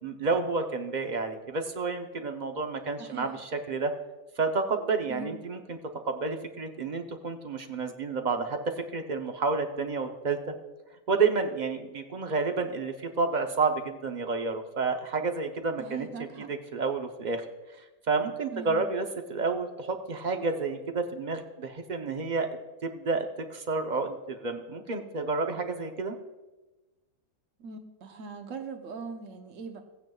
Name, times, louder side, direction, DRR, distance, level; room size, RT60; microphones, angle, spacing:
voice 1, 0.0-3.9 4.4-5.8 6.0-8.6 8.9-10.5 11.1-16.1 16.4-17.4 17.8-22.5 22.8-26.2, right 4 dB, 40° right, 5 dB, 0.7 m, -30 dB
voice 2, 3.0-3.4 5.1-5.4 15.8-16.5 18.5-18.8 27.6-29.8, right 4 dB, 60° right, 6 dB, 1.3 m, -40 dB
16.0 x 9.3 x 2.3 m, 1.1 s
omnidirectional pair, 1.5 m